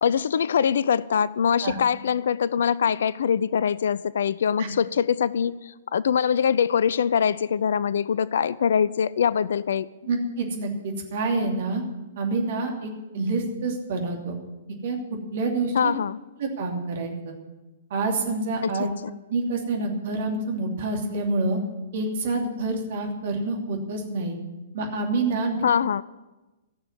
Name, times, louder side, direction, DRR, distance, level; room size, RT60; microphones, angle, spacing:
voice 1, 0.0-9.9 15.7-16.2 18.6-18.9 25.6-26.0, left 7 dB, 60° left, 20 dB, 0.4 m, -23 dB
voice 2, 10.1-11.8 12.2-12.9 13.1-14.4 14.8-15.0 15.3-15.9 16.4-17.4 17.9-18.9 19.3-21.6 21.9-24.4 24.7-25.6, right 3 dB, 50° right, 2 dB, 2.8 m, -27 dB
15.0 x 6.9 x 9.8 m, 1.1 s
figure-of-eight pair, 115°, 0 cm